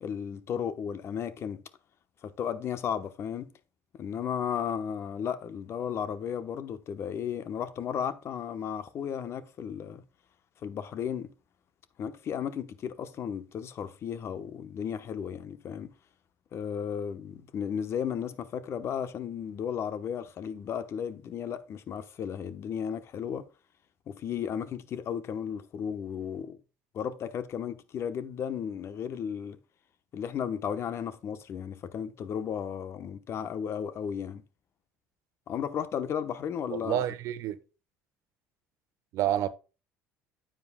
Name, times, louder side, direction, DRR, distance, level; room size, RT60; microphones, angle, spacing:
voice 1, 0.0-1.6 2.2-3.5 3.9-10.0 10.6-11.3 12.0-15.9 16.5-23.5 24.1-26.6 26.9-29.6 30.1-34.4 35.5-37.0, left 8 dB, 50° left, 0.9 m, -34 dB
voice 2, 36.7-37.6 39.1-39.5, right 12 dB, 65° right, 0.9 m, -29 dB
9.4 x 7.5 x 2.2 m
supercardioid pair, 80°, 6 cm